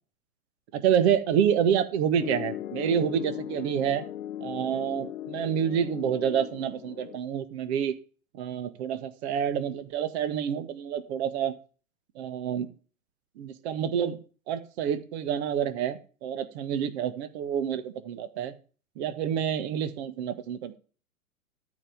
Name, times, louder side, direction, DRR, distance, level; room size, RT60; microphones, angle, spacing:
voice 1, 0.7-4.0 4.4-7.9 8.3-11.5 12.2-12.7 13.4-14.2 14.5-18.5 19.0-20.8, right 8 dB, 45° right, 12 dB, 1.7 m, -28 dB
Piano, 2.2-7.2, left 12 dB, 65° left, 1.0 m, -38 dB
13.5 x 5.3 x 7.3 m, 0.38 s
figure-of-eight pair, 105°, 43 cm